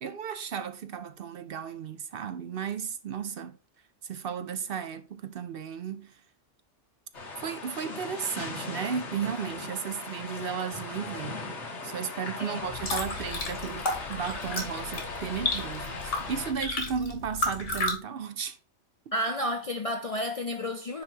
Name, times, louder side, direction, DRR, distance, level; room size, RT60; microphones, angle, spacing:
voice 1, 0.0-3.6 4.0-6.2 7.4-11.5 11.8-18.6, right 7 dB, 60° right, 0.7 m, -34 dB
sound 1, 7.1-16.5, left 3 dB, 70° left, 2.1 m, -39 dB
sound 2, 12.6-17.9, left 2 dB, 85° left, 2.3 m, -33 dB
voice 2, 19.1-21.0, left 1 dB, 40° left, 0.5 m, -31 dB
9.4 x 3.1 x 4.5 m
omnidirectional pair, 1.2 m